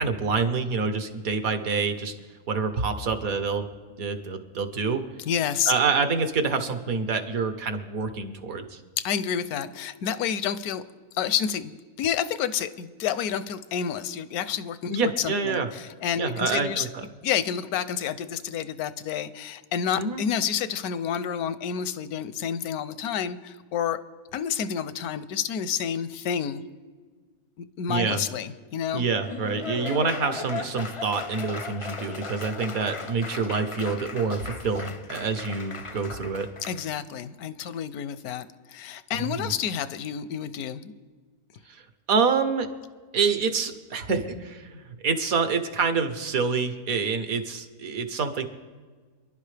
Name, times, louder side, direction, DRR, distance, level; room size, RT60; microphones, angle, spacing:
voice 1, 0.0-2.1 2.5-3.6 4.0-5.0 5.7-8.8 14.9-15.7 16.2-17.0 20.0-20.2 27.9-28.2 28.9-36.5 39.1-39.5 41.7-41.8 42.1-42.7 43.1-48.4, right 5 dB, 70° right, 8 dB, 1.5 m, -27 dB
voice 2, 5.2-5.7 9.0-10.8 11.1-16.9 17.2-24.0 24.3-26.6 27.6-29.1 36.6-40.9, left 8 dB, 80° left, 14 dB, 1.1 m, -29 dB
Laughter / Applause, 29.0-36.9, left 4 dB, 40° left, 0.4 m, -37 dB
27.0 x 11.0 x 3.3 m, 1.4 s
omnidirectional pair, 1.6 m